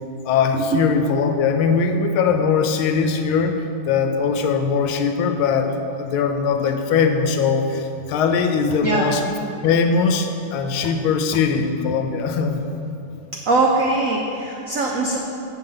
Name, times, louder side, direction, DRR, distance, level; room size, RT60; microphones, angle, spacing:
voice 1, 0.2-3.6 3.9-9.2 9.6-12.6, left 5 dB, 85° left, 6 dB, 1.5 m, -20 dB
voice 2, 13.5-15.2, right 3 dB, 85° right, -1 dB, 0.7 m, -21 dB
7.8 x 5.1 x 5.5 m, 2.7 s
omnidirectional pair, 2.2 m